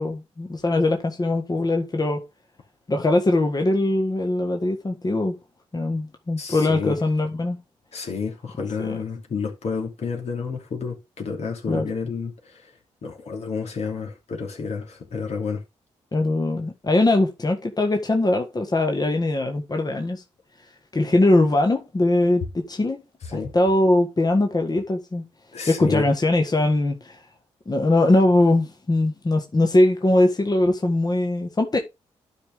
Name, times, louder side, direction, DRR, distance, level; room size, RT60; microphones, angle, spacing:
voice 1, 0.0-2.2 2.9-5.4 5.7-7.6 8.8-9.0 11.7-11.9 16.1-20.2 20.9-23.0 23.5-25.2 25.7-27.2 27.6-31.8, left 2 dB, 30° left, 1.7 m, -21 dB
voice 2, 6.4-7.0 7.9-12.8 13.0-15.6 23.2-23.5 25.5-26.1, left 5 dB, 60° left, 2.9 m, -30 dB
11.5 x 5.1 x 3.6 m
supercardioid pair, 45°, 12 cm